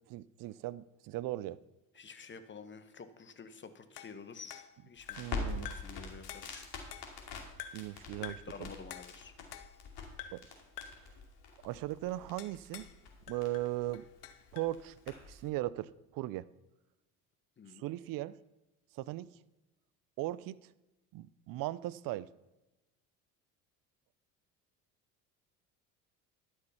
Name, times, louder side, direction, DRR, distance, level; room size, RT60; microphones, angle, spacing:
voice 1, 0.1-1.6 5.2-5.7 7.7-8.7 10.3-10.4 11.0-11.1 11.6-12.9 13.3-14.0 14.5-16.5 17.8-18.4 18.9-19.3 20.2-20.6 21.1-22.3, right 16 dB, 50° right, 19 dB, 0.6 m, -38 dB
voice 2, 1.9-6.7 8.2-9.3 17.6-17.8, left 5 dB, 25° left, 10 dB, 1.2 m, -50 dB
sound 1, 4.0-5.4 5.7-6.0 6.3-7.3 7.6-7.9 8.2-8.6 8.9-9.9 10.2-10.5 10.8-11.1 12.4-13.0 13.3-14.8, left 10 dB, 90° left, 0.8 m, -48 dB
Crackle, 5.0-15.5, left 4 dB, 55° left, 2.7 m, -45 dB
11.5 x 6.4 x 5.7 m, 0.99 s
hypercardioid pair, 70°, 46 cm